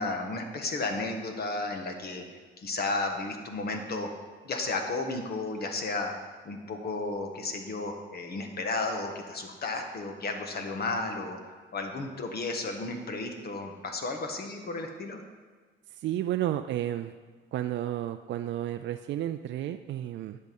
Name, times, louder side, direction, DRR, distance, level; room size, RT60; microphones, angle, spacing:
voice 1, 0.0-2.2 2.6-4.1 4.4-6.1 6.4-15.2, left 3 dB, 50° left, 4 dB, 1.5 m, -33 dB
voice 2, 15.9-17.1 17.5-20.4, right 12 dB, 70° right, 8 dB, 0.4 m, -32 dB
10.5 x 6.5 x 5.3 m, 1.5 s
cardioid pair, 90°, 20 cm